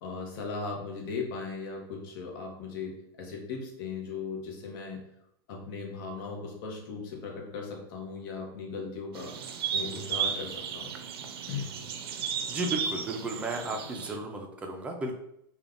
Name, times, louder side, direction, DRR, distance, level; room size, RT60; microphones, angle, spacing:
voice 1, 0.0-5.0 5.5-10.9 11.5-11.8, left 4 dB, 65° left, 0 dB, 0.8 m, -38 dB
sound 1, 9.1-14.2, right 7 dB, 80° right, 0.4 m, -34 dB
voice 2, 12.5-15.1, right 2 dB, 10° right, 2 dB, 0.3 m, -34 dB
3.3 x 2.2 x 2.4 m, 0.77 s
supercardioid pair, 150°, 13 cm